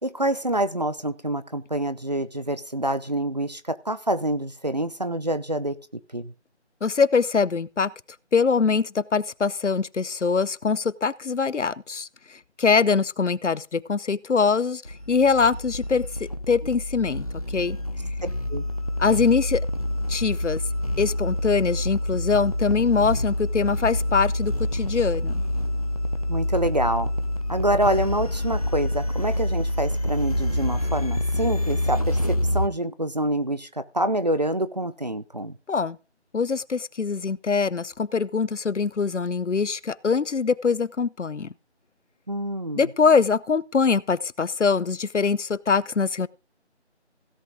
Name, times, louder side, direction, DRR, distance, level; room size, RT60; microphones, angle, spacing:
voice 1, 0.0-5.8 6.1-6.3 18.5-18.6 26.3-27.1 27.5-35.6 42.3-42.9, right 1 dB, 35° right, 0.7 m, -26 dB
voice 2, 6.8-7.9 8.3-16.1 16.5-17.8 19.0-19.6 20.1-20.6 21.0-25.4 35.7-36.0 36.3-41.5 42.7-46.3, left 5 dB, 85° left, 0.8 m, -23 dB
sound 1, 14.9-32.7, left 1 dB, 30° left, 0.7 m, -27 dB
16.5 x 5.9 x 5.0 m
figure-of-eight pair, 170°, 35 cm